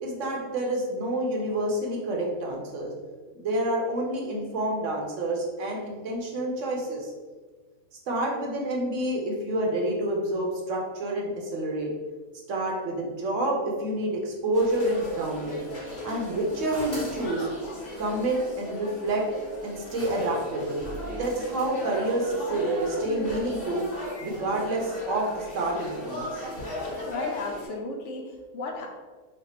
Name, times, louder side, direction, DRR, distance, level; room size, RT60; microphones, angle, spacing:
voice 1, 0.0-2.9 3.3-7.1 8.1-11.9 12.5-15.7 16.0-17.5 18.0-19.2 19.6-20.8 21.1-23.8 24.2-26.4, right 1 dB, 70° right, -1 dB, 1.0 m, -28 dB
sound 1, 14.5-27.7, left 1 dB, 45° left, 1.2 m, -37 dB
voice 2, 27.1-28.9, left 2 dB, 70° left, 1 dB, 0.9 m, -34 dB
3.2 x 2.2 x 4.1 m, 1.4 s
omnidirectional pair, 1.4 m